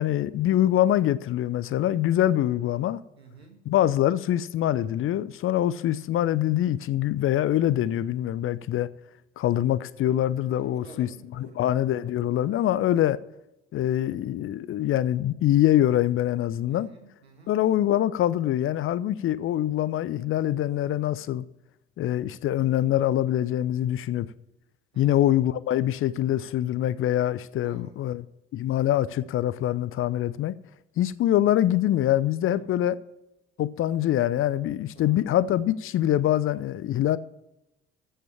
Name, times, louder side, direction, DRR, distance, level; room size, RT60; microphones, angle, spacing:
voice 1, 0.0-3.0 3.7-8.9 9.4-11.1 11.4-13.2 13.7-16.9 17.5-21.4 22.0-24.3 25.0-28.2 28.5-30.5 31.0-33.0 33.6-37.2, left 12 dB, 40° left, 0.7 m, -24 dB
voice 2, 3.2-3.6 10.6-11.7 16.7-17.5 24.9-25.3 27.6-28.0 32.4-32.7 34.9-35.2, right 3 dB, 85° right, 1.8 m, -50 dB
15.0 x 5.7 x 7.0 m
figure-of-eight pair, 55°, 31 cm